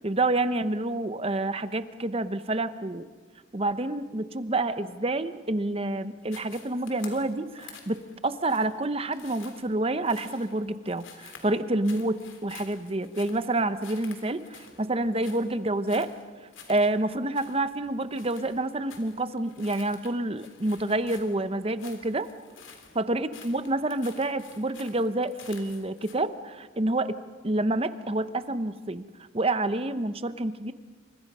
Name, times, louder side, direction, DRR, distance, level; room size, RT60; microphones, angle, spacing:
voice 1, 0.0-3.0 3.5-8.0 8.2-16.1 16.7-22.3 23.0-27.2 27.4-29.0 29.3-30.7, right 2 dB, 30° right, 12 dB, 0.9 m, -28 dB
sound 1, 6.2-26.1, left 6 dB, 75° left, 3.4 m, -50 dB
28.0 x 25.5 x 5.5 m, 1.5 s
head